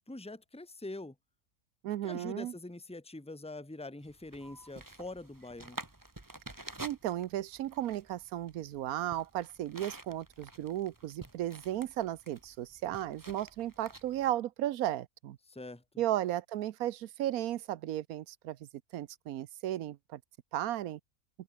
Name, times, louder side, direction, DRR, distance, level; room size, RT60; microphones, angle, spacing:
voice 1, 0.1-1.2 2.0-5.8 15.5-15.8, left 2 dB, 5° left, 1.8 m, -44 dB
voice 2, 1.8-2.5 6.8-15.4 16.0-20.2 20.5-21.0, right 13 dB, 70° right, 1.1 m, -35 dB
sound 1, 4.0-14.3, right 2 dB, 15° right, 1.4 m, -50 dB
open air
omnidirectional pair, 1.6 m